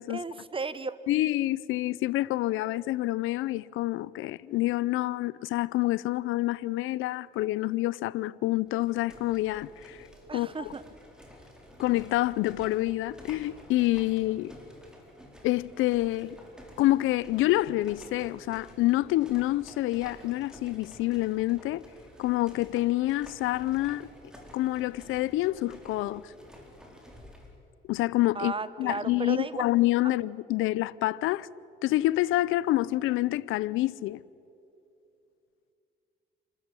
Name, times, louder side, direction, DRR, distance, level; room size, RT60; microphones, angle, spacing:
voice 1, 0.1-1.0 10.3-10.8 28.3-29.6, right 4 dB, 25° right, 1.1 m, -34 dB
voice 2, 1.1-10.0 10.3-10.5 11.8-14.5 15.4-16.4 16.8-21.8 22.2-24.1 24.5-26.3 27.9-28.5 28.8-31.5 31.8-34.2, left 17 dB, 90° left, 0.5 m, -27 dB
sound 1, 8.7-27.6, equal, 5° right, 4.5 m, -51 dB
28.5 x 13.5 x 9.8 m
cardioid pair, 90°, 20 cm